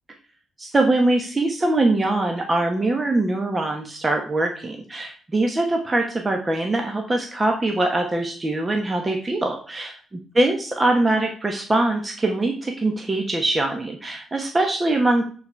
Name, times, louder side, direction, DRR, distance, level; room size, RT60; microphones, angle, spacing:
voice 1, 0.6-9.9 10.3-15.3, right 2 dB, 25° right, 3 dB, 1.2 m, -22 dB
8.4 x 4.4 x 4.5 m, 0.42 s
cardioid pair, 90°, 0 cm